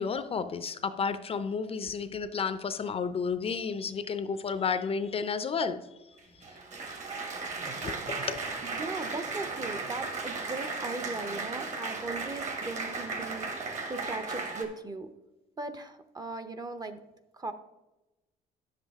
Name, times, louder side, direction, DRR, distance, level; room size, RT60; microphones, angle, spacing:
voice 1, 0.0-5.8 7.8-8.4, left 5 dB, 35° left, 0.5 m, -32 dB
Applause, 6.2-14.6, right 3 dB, 45° right, 1.6 m, -36 dB
voice 2, 8.6-15.1 15.6-17.0 17.3-17.5, right 3 dB, 25° right, 0.7 m, -38 dB
10.0 x 7.4 x 3.5 m
cardioid pair, 110°, 17 cm